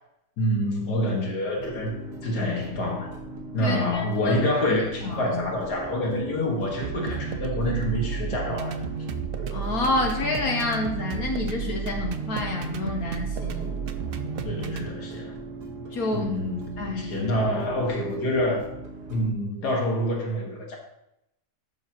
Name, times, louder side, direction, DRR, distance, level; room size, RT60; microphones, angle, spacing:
voice 1, 0.4-2.0 2.2-3.1 3.5-8.8 14.4-15.4 16.1-18.6 19.1-20.8, left 1 dB, 90° left, 0 dB, 2.4 m, -27 dB
sound 1, 1.5-19.3, right 3 dB, 90° right, 2.0 m, -39 dB
voice 2, 3.6-4.4 4.7-5.2 9.5-13.8 15.9-16.3 16.8-17.3, left 2 dB, 65° left, 1 dB, 1.5 m, -29 dB
sound 2, 6.8-14.9, right 6 dB, 70° right, 0.5 m, -32 dB
12.0 x 6.9 x 3.0 m, 0.83 s
omnidirectional pair, 1.7 m